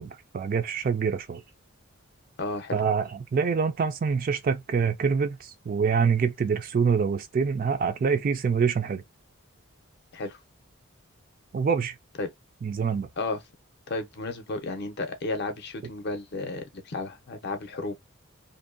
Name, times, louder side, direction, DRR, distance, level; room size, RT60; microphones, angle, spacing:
voice 1, 0.0-1.4 2.7-9.0 11.5-11.9 12.6-13.1, right 6 dB, 40° right, 0.3 m, -25 dB
voice 2, 2.4-2.8 10.1-10.4 12.2-12.3 13.2-13.4 13.9-18.0, left 2 dB, 50° left, 0.6 m, -33 dB
2.6 x 2.1 x 2.4 m
head